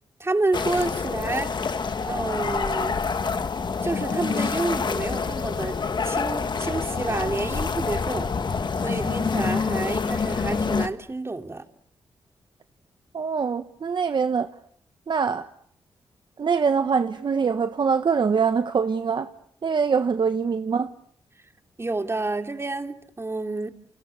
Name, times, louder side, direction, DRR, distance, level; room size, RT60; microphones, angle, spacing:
voice 1, 0.2-3.0 3.8-5.8 6.0-8.3 8.8-11.6 21.8-23.7, right 2 dB, 25° right, 3.0 m, -29 dB
sound 1, 0.5-10.9, left 5 dB, 50° left, 1.8 m, -27 dB
voice 2, 13.1-14.5 15.1-15.5 16.4-19.3 19.6-20.9, right 6 dB, 55° right, 1.3 m, -23 dB
30.0 x 30.0 x 6.6 m
cardioid pair, 55°, 10 cm